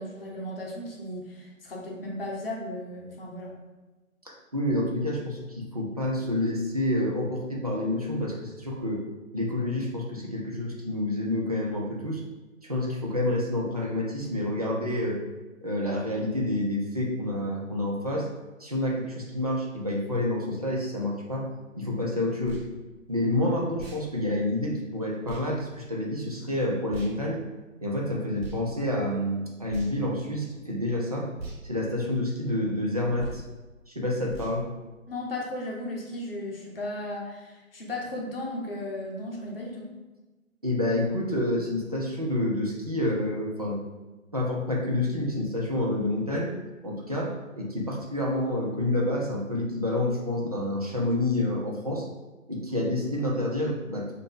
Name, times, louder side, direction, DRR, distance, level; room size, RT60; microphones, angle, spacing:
voice 1, 0.0-3.5 35.1-39.9, left 1 dB, 45° left, -1 dB, 0.9 m, -35 dB
voice 2, 4.3-9.0 9.3-12.2 12.6-15.2 15.6-18.3 18.6-21.5 21.7-22.6 23.1-27.4 27.8-31.3 31.6-33.4 33.9-34.7 40.6-43.8 44.3-46.5 46.8-52.0 52.5-54.1, left 1 dB, 30° right, -3 dB, 0.4 m, -28 dB
sound 1, 22.4-22.7 23.7-24.0 25.2-25.4 26.9-27.1 28.4-28.6 29.6-30.1 31.4-31.6 33.1-33.5 34.3-34.6, right 3 dB, 50° right, 0.9 m, -39 dB
3.0 x 2.6 x 3.8 m, 1.2 s
figure-of-eight pair, 150°, 40 cm